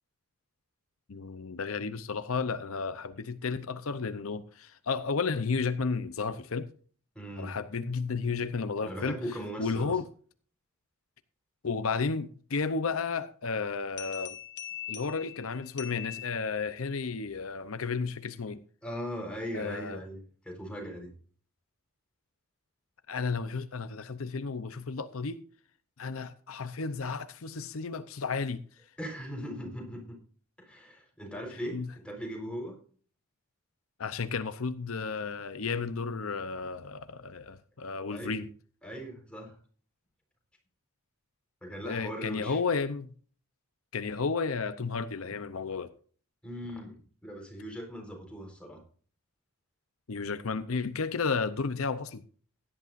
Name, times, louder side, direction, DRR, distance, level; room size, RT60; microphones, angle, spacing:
voice 1, 1.1-6.7 7.4-9.2 9.6-10.1 11.6-14.4 14.9-18.6 19.5-20.0 23.1-25.4 26.0-28.6 31.7-31.9 34.0-38.5 41.8-43.1 43.9-45.9 50.1-52.2, left 4 dB, 75° left, 0.7 m, -32 dB
voice 2, 7.1-7.6 8.8-10.0 18.8-21.1 29.0-30.2 30.6-32.7 38.1-38.3 38.8-39.6 41.6-42.6 46.4-48.8, equal, 5° left, 4.2 m, -39 dB
sound 1, 14.0-16.9, left 12 dB, 55° left, 1.8 m, -42 dB
16.5 x 11.0 x 2.6 m
head